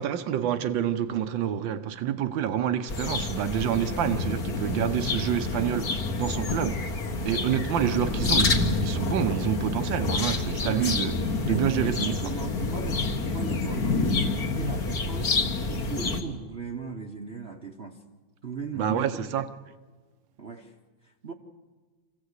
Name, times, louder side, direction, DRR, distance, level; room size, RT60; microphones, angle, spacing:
voice 1, 0.0-6.9 7.2-12.3 18.7-19.4, right 9 dB, 75° right, 1.6 m, -28 dB
sound 1, 2.9-16.2, left 3 dB, 50° left, 1.9 m, -28 dB
voice 2, 11.5-14.2 14.6-18.0 18.4-19.3 20.4-20.7 21.0-21.3, right 5 dB, 40° right, 1.1 m, -38 dB
25.0 x 16.0 x 8.2 m
omnidirectional pair, 2.1 m